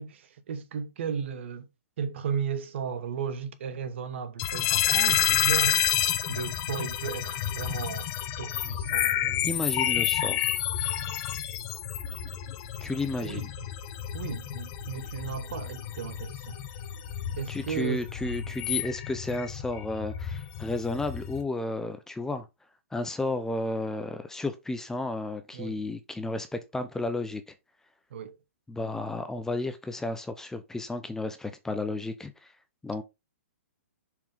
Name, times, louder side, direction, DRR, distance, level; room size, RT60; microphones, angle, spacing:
voice 1, 0.0-1.7 2.0-5.8 6.3-9.5 13.2-13.7 14.1-16.6 17.4-18.1 25.5-25.8 28.1-28.4, right 7 dB, 55° right, 1.2 m, -35 dB
sound 1, 4.4-21.4, left 11 dB, 35° left, 1.1 m, -30 dB
voice 2, 9.4-10.5 12.8-13.4 17.5-22.5 22.9-27.4 28.7-32.3 32.8-33.0, left 2 dB, 5° left, 0.8 m, -32 dB
7.1 x 4.8 x 3.5 m
figure-of-eight pair, 120°, 8 cm